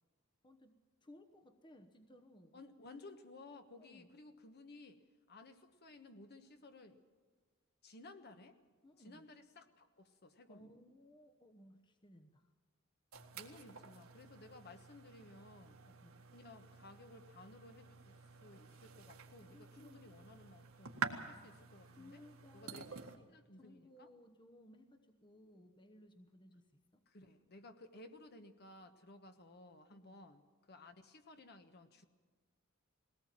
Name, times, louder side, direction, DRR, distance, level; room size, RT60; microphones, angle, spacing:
voice 1, 0.4-2.6 3.8-4.1 8.8-9.2 10.5-12.5 15.8-16.3 19.3-20.0 21.8-27.0 29.9-30.3, left 1 dB, 20° left, 5 dB, 1.0 m, -61 dB
voice 2, 2.5-5.0 5.3-7.0 7.8-8.6 9.0-10.7 13.3-15.8 16.3-22.2 22.5-22.9 23.3-24.1 27.1-30.4 30.7-32.1, left 2 dB, 50° left, 7 dB, 1.3 m, -57 dB
sound 1, 13.1-23.2, right 5 dB, 70° right, 1.8 m, -49 dB
21.0 x 18.0 x 7.5 m, 1.5 s
head